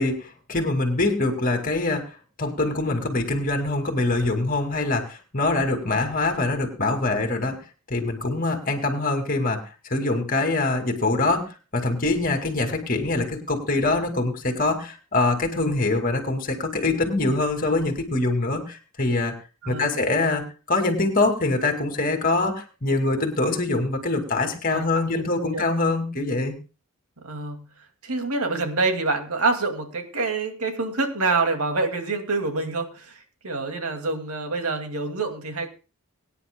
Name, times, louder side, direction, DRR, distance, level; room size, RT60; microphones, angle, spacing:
voice 1, 0.0-7.6 7.9-9.6 9.9-19.3 19.7-20.4 20.7-26.6, left 2 dB, 40° left, 4 dB, 2.2 m, -24 dB
voice 2, 19.6-20.0 24.7-25.6 27.2-27.6 28.0-33.2 33.4-35.7, right 3 dB, 80° right, 5 dB, 2.2 m, -26 dB
23.0 x 10.0 x 2.2 m, 0.33 s
head